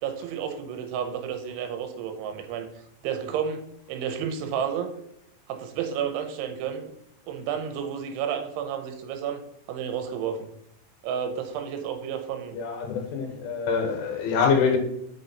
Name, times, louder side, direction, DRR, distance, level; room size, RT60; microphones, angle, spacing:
voice 1, 0.0-2.7 3.0-4.9 5.5-6.9 7.3-9.4 9.7-10.5 11.0-12.6, right 8 dB, 85° right, 3.2 m, -31 dB
voice 2, 12.5-14.8, left 5 dB, 85° left, 3.6 m, -25 dB
6.7 x 6.1 x 4.0 m
omnidirectional pair, 5.5 m